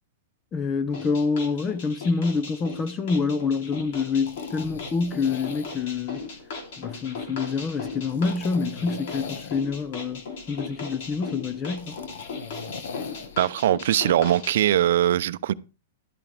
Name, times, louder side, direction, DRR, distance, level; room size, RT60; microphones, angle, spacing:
voice 1, 0.5-6.2 6.8-10.2 10.5-12.0, left 4 dB, 20° left, 0.6 m, -27 dB
sound 1, 0.9-14.6, left 4 dB, 60° left, 3.2 m, -38 dB
sound 2, 3.8-13.4, left 5 dB, 80° left, 1.4 m, -42 dB
voice 2, 13.4-15.5, right 12 dB, 70° right, 0.5 m, -21 dB
12.0 x 8.6 x 3.3 m
hypercardioid pair, 140°, 0 cm